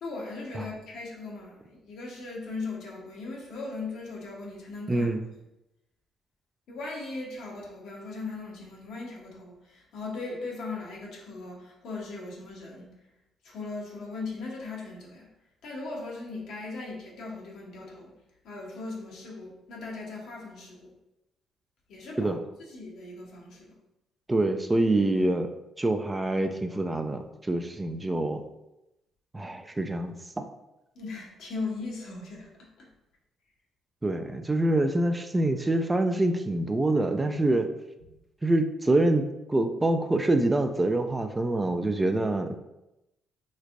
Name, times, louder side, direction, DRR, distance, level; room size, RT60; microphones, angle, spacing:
voice 1, 0.0-5.1 6.7-12.9 13.4-15.3 15.6-18.1 18.4-20.9 21.9-22.3 22.6-23.8 30.9-32.9, left 3 dB, 75° left, -2 dB, 0.9 m, -38 dB
voice 2, 4.9-5.2 22.2-22.4 24.3-25.5 25.8-28.4 29.3-30.5 34.0-37.7 38.4-39.2 39.5-42.6, right 2 dB, 20° right, 7 dB, 0.3 m, -25 dB
3.2 x 3.2 x 2.5 m, 0.91 s
supercardioid pair, 60°, 0 cm